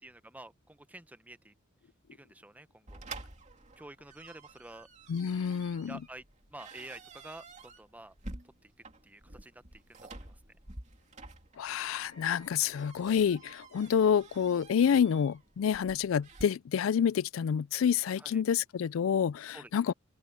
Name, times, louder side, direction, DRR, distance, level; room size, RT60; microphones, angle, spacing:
voice 1, 0.0-1.5 2.1-3.0 3.8-4.9 5.9-6.2 6.5-8.1 8.6-8.7 9.0-10.6 18.1-18.4 19.5-19.7, right 1 dB, 10° right, 0.7 m, -50 dB
sound 1, 2.9-16.4, right 2 dB, 35° right, 2.7 m, -50 dB
voice 2, 5.1-6.0 11.6-19.9, left 7 dB, 75° left, 0.4 m, -28 dB
open air
head